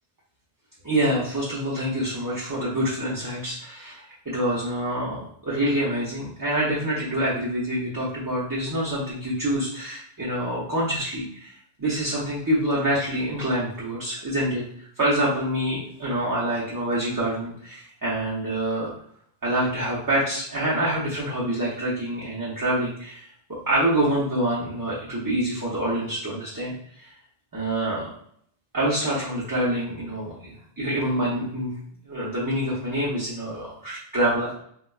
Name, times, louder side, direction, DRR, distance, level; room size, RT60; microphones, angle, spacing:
voice 1, 0.8-14.6 15.0-18.9 19.4-23.3 23.7-27.1 27.5-28.1 28.7-31.7 32.1-34.5, right 1 dB, 25° right, -7 dB, 0.6 m, -26 dB
4.0 x 2.3 x 2.3 m, 0.65 s
omnidirectional pair, 1.0 m